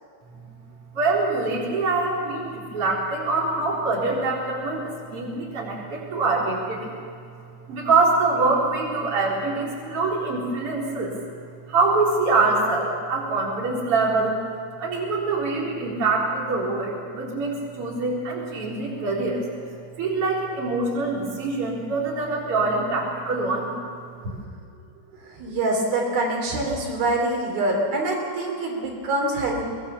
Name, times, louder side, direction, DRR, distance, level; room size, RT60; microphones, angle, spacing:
voice 1, 0.9-6.9 7.7-11.1 11.7-14.4 14.8-19.4 20.0-23.7, right 3 dB, 40° right, -3 dB, 4.8 m, -24 dB
voice 2, 25.2-29.6, right 2 dB, 80° right, 0 dB, 5.4 m, -25 dB
23.0 x 20.0 x 7.2 m, 2.3 s
omnidirectional pair, 4.2 m